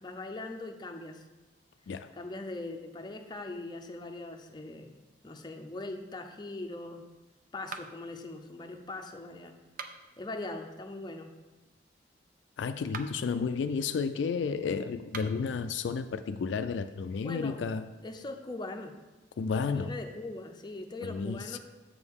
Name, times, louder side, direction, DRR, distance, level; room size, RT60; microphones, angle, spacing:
voice 1, 0.0-1.2 2.1-7.1 7.5-9.5 10.2-11.3 17.2-17.6 18.0-18.9 19.7-21.6, left 2 dB, 25° left, 4 dB, 0.6 m, -41 dB
sound 1, 7.7-8.2 9.6-10.2 12.8-13.3 15.0-15.5, right 5 dB, 50° right, 0.5 m, -43 dB
voice 2, 12.6-17.9 19.4-19.9 21.0-21.6, left 5 dB, 75° left, 9 dB, 0.3 m, -32 dB
7.5 x 6.3 x 3.6 m, 1.1 s
head